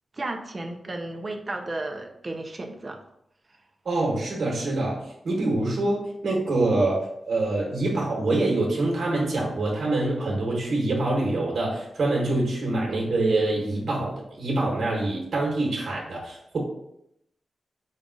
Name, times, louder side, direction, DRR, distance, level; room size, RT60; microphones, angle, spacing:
voice 1, 0.1-3.0 12.8-13.0, right 2 dB, 35° right, 3 dB, 0.6 m, -33 dB
voice 2, 3.8-16.6, right 2 dB, 75° right, -3 dB, 1.3 m, -25 dB
5.2 x 2.4 x 3.8 m, 0.78 s
wide cardioid pair, 110°, 0 cm